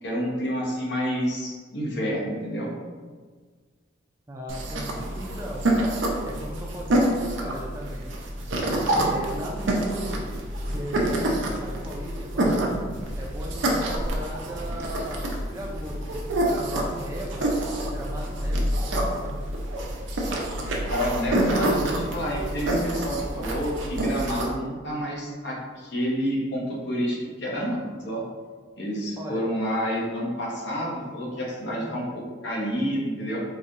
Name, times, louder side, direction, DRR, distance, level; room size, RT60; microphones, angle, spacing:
voice 1, 0.0-2.7 20.8-27.8 28.0-28.2 28.8-33.4, equal, 65° left, -3 dB, 0.8 m, -29 dB
voice 2, 4.3-5.7 6.2-8.1 8.8-10.3 10.6-12.7 13.1-17.5 17.9-19.4 29.2-29.4 31.6-32.0, right 1 dB, 15° right, -2 dB, 0.4 m, -38 dB
sound 1, 4.5-24.5, right 1 dB, 80° right, 0.6 m, -27 dB
sound 2, 8.0-16.1 16.3-16.4 16.6-17.0 17.7-19.3, equal, 85° left, 1.0 m, -47 dB
4.0 x 2.7 x 2.5 m, 1.5 s
head